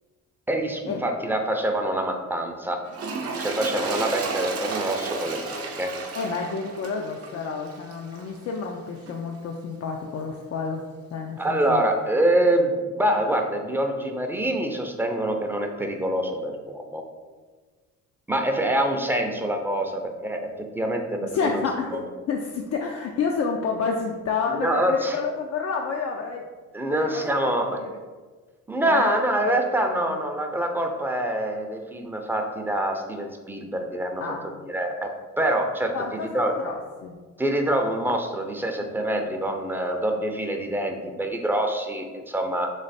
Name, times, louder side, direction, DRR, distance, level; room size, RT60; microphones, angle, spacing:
voice 1, 0.5-2.8 3.4-5.9 11.4-17.0 18.3-20.5 20.7-21.6 24.5-25.2 26.7-27.8 28.7-35.1 35.4-35.9 36.2-36.5 37.4-42.7, right 1 dB, 5° right, 3 dB, 0.5 m, -25 dB
Toilet flush, 2.9-8.4 9.0-9.2, right 4 dB, 50° right, 0.7 m, -32 dB
voice 2, 6.1-10.8 11.1-11.9 21.3-26.4 26.9-27.9 28.8-29.5 29.9-30.2 34.2-34.5 35.9-37.2, left 5 dB, 55° left, 1 dB, 0.5 m, -30 dB
3.2 x 3.2 x 4.1 m, 1.4 s
cardioid pair, 90°, 30 cm